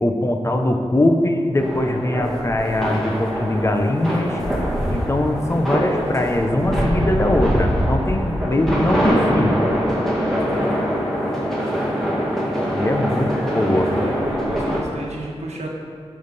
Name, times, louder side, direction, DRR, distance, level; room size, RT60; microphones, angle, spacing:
voice 1, 0.0-4.4 4.9-9.5 12.7-14.1, left 1 dB, 25° left, 4 dB, 0.7 m, -21 dB
sound 1, 1.6-14.8, equal, 5° left, 1.9 m, -23 dB
voice 2, 13.8-15.7, right 1 dB, 90° right, -1 dB, 1.3 m, -31 dB
12.0 x 5.4 x 4.1 m, 2.3 s
wide cardioid pair, 115°, 11 cm